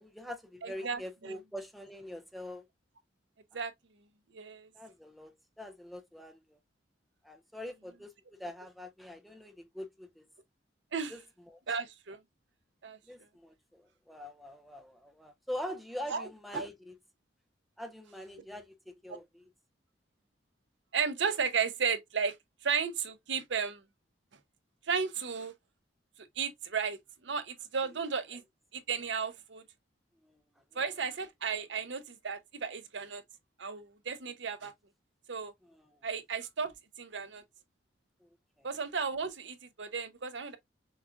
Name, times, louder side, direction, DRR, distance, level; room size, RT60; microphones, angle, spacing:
voice 1, 0.0-2.6 4.7-6.6 7.2-10.3 11.1-11.2 11.5-11.6 13.1-16.9 17.8-19.4 30.2-30.4 30.7-30.8 35.7-35.9 38.2-38.3 38.6-38.7, left 1 dB, ahead, 0.4 m, -44 dB
voice 2, 0.6-1.4 3.5-3.7 4.3-4.7 10.9-11.1 11.7-12.2 12.8-13.0 16.1-16.7 19.1-19.2 20.9-22.4 22.6-23.8 24.9-25.5 26.2-27.0 27.2-28.4 28.7-29.6 30.7-33.2 33.6-34.7 35.3-35.5 36.0-37.4 38.6-40.6, right 6 dB, 65° right, 0.7 m, -34 dB
6.4 x 2.4 x 2.3 m
head